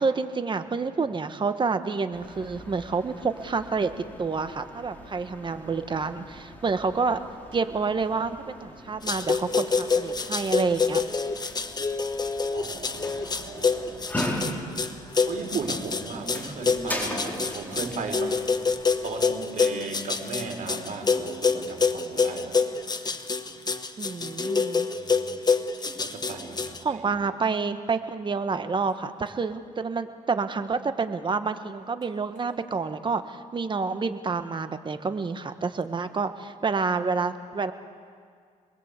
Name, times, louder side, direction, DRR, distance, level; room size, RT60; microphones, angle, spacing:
voice 1, 0.0-3.9 4.2-7.2 7.5-11.0 24.0-24.8 26.8-37.7, right 4 dB, 35° right, 9 dB, 1.4 m, -28 dB
sound 1, 2.1-19.2, equal, 10° left, 4.2 m, -39 dB
sound 2, 9.1-26.8, left 4 dB, 30° left, 1.3 m, -26 dB
voice 2, 12.5-14.0 15.3-18.4 19.0-23.6 25.0-25.6 25.8-27.3, right 4 dB, 65° right, 3 dB, 4.5 m, -37 dB
27.5 x 21.0 x 8.3 m, 2.1 s
cardioid pair, 95°, 14 cm